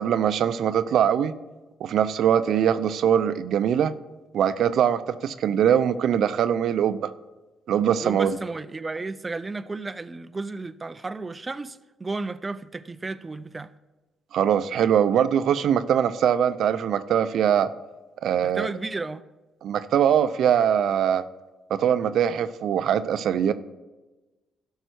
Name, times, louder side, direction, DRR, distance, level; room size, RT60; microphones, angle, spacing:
voice 1, 0.0-1.3 1.8-3.9 4.3-7.1 7.7-8.4 14.3-17.7 18.2-18.7 19.6-21.2 21.7-23.5, right 9 dB, 70° right, 0.6 m, -22 dB
voice 2, 8.0-13.7 18.4-19.2, right 3 dB, 25° right, 0.4 m, -33 dB
12.5 x 5.6 x 6.3 m
cardioid pair, 90°, 0 cm